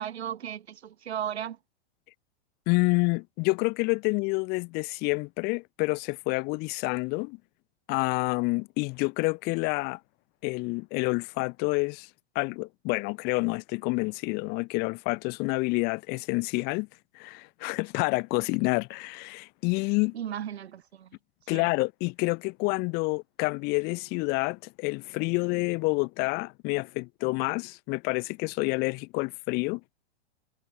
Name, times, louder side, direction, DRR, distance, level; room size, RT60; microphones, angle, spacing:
voice 1, 0.0-1.6 20.1-21.1 21.5-21.7, right 9 dB, 90° right, 5.9 m, -35 dB
voice 2, 2.7-7.4 7.9-10.0 10.4-12.1 12.3-16.9 17.1-20.1 21.5-29.8, left 28 dB, 30° left, 0.7 m, -28 dB
supercardioid pair, 145°, 31 cm